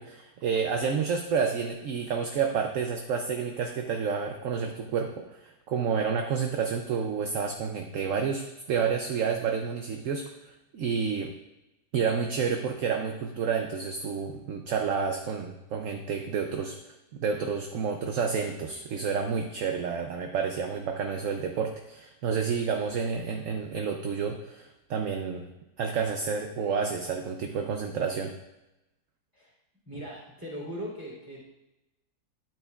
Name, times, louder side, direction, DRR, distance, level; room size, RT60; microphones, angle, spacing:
voice 1, 0.0-11.3 11.9-16.9 17.2-25.5 25.8-28.3, right 6 dB, 65° right, 4 dB, 0.9 m, -30 dB
voice 2, 29.8-31.5, equal, 10° right, -5 dB, 2.9 m, -39 dB
11.0 x 8.8 x 2.4 m, 0.96 s
omnidirectional pair, 1.7 m